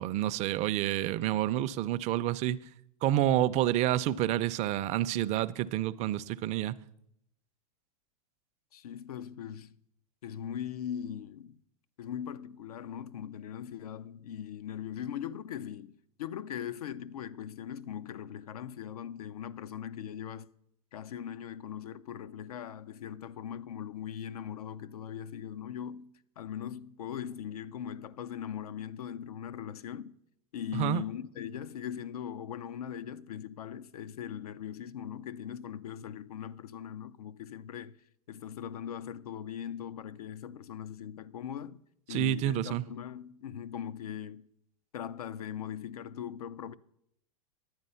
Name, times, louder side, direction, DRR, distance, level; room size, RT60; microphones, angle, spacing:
voice 1, 0.0-2.6 3.0-6.8 30.7-31.0 42.1-42.8, right 13 dB, 40° right, 0.5 m, -29 dB
voice 2, 8.7-9.8 10.2-11.6 12.0-20.5 20.9-26.1 26.4-30.1 30.5-38.0 38.3-41.8 42.1-44.4 44.9-46.7, left 9 dB, 85° left, 0.5 m, -40 dB
11.5 x 8.9 x 5.5 m
hypercardioid pair, 110°, 19 cm